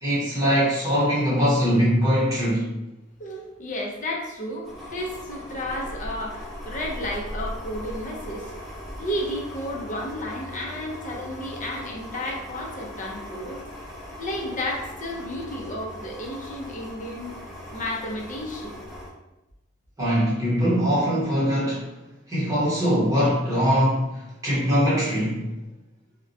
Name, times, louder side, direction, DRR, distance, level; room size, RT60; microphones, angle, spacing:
voice 1, 0.0-2.7 20.0-21.9 22.3-25.5, equal, 15° right, -9 dB, 1.0 m, -22 dB
voice 2, 3.2-8.5 9.0-13.6 14.2-17.3 17.7-18.8, left 1 dB, 40° left, 0 dB, 0.5 m, -32 dB
sound 1, 4.6-19.1, equal, ahead, 0.9 m, -39 dB
2.3 x 2.1 x 2.6 m, 0.98 s
head